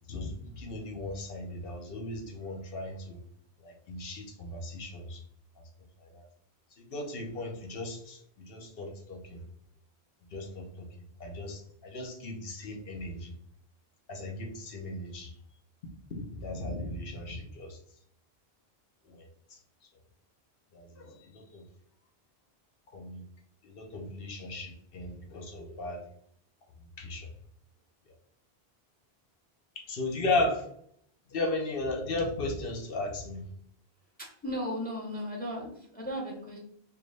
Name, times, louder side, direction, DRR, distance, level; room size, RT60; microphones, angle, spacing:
voice 1, 0.1-3.2 3.6-5.2 6.0-6.2 6.8-9.4 10.3-10.9 11.2-13.3 14.1-15.3 16.1-17.8 19.1-19.3 20.7-21.6 22.9-23.2 23.6-26.0 27.0-27.3 29.8-30.7 31.3-33.4, left 2 dB, 65° left, 2 dB, 1.0 m, -36 dB
voice 2, 34.2-36.6, equal, 10° left, 0 dB, 0.8 m, -36 dB
4.6 x 2.4 x 3.2 m, 0.67 s
omnidirectional pair, 1.1 m